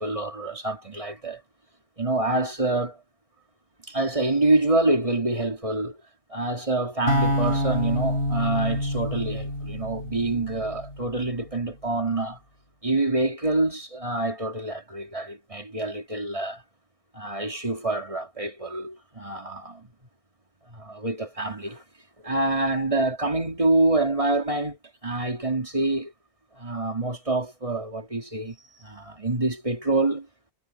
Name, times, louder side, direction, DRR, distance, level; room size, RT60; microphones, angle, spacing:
voice 1, 0.0-1.4 2.0-3.0 3.9-6.0 6.3-12.4 12.8-16.6 17.1-19.9 20.7-21.8 22.2-24.8 25.0-26.1 26.6-30.3, right 2 dB, 30° right, 2.6 m, -26 dB
sound 1, 7.1-11.2, equal, 60° left, 5.5 m, -27 dB
omnidirectional pair, 1.1 m